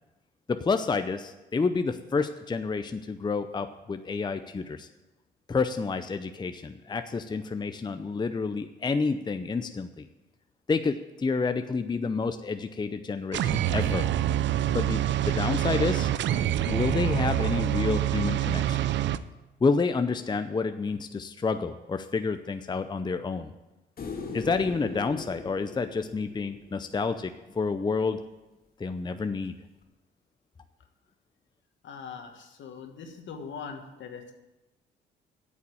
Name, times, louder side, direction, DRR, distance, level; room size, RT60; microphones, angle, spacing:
voice 1, 0.5-4.9 5.5-10.1 10.7-14.1 14.7-16.1 16.6-18.8 19.6-23.5 24.3-28.2 28.8-29.6, left 4 dB, 20° left, 9 dB, 0.6 m, -29 dB
sound 1, 13.3-19.2, right 12 dB, 65° right, 0.5 m, -26 dB
sound 2, 24.0-27.2 29.8-29.9, left 4 dB, 50° left, 1.9 m, -39 dB
voice 2, 31.8-34.3, left 5 dB, 70° left, 5 dB, 1.7 m, -41 dB
8.7 x 7.2 x 8.6 m, 1.0 s
cardioid pair, 90°, 20 cm